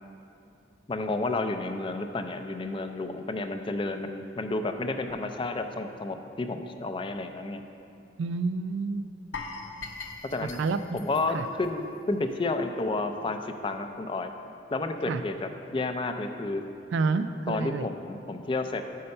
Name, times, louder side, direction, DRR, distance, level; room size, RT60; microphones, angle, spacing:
voice 1, 0.9-7.6 10.3-10.6 10.9-14.3 14.7-16.6 17.5-18.9, left 2 dB, 25° left, 7 dB, 0.4 m, -31 dB
voice 2, 8.2-9.1 10.4-11.0 11.3-11.5 15.1-15.2 16.9-17.9, right 4 dB, 80° right, 12 dB, 0.3 m, -29 dB
sound 1, 9.3-12.3 12.6-12.8 13.3-13.4, left 4 dB, 80° left, 0.7 m, -41 dB
7.7 x 5.6 x 5.4 m, 2.7 s
head